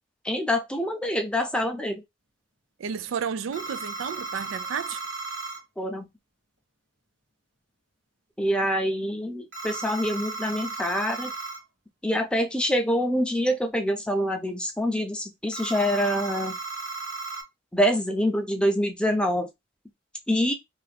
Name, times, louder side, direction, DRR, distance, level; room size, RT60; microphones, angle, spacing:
voice 1, 0.2-2.0 5.8-6.1 8.4-11.3 12.0-16.6 17.7-19.5 20.3-20.5, equal, 5° left, 0.5 m, -25 dB
voice 2, 2.8-5.0, right 7 dB, 85° right, 0.4 m, -32 dB
sound 1, 3.5-5.6 9.5-11.6 15.5-17.4, right 4 dB, 65° right, 1.2 m, -35 dB
2.8 x 2.4 x 3.3 m
head